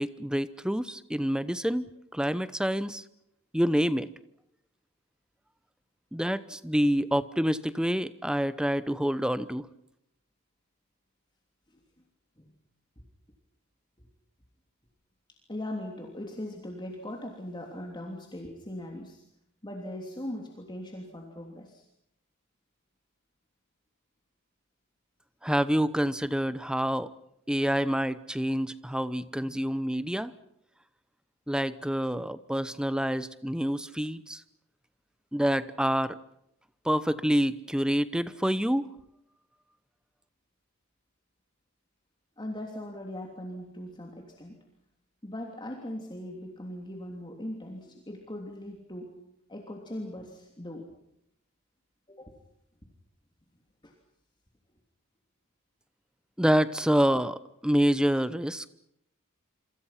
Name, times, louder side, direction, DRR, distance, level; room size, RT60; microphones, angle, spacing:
voice 1, 0.0-3.0 3.5-4.1 6.1-9.7 25.4-27.1 27.5-30.3 31.5-34.4 35.3-36.2 36.8-38.9 56.4-58.7, equal, 5° right, 15 dB, 0.9 m, -27 dB
voice 2, 15.5-19.2 19.6-21.8 42.4-44.6 45.2-49.2 49.5-50.9 52.1-52.3 53.8-53.9, left 1 dB, 20° left, 1 dB, 3.2 m, -40 dB
27.0 x 26.5 x 5.9 m, 0.77 s
head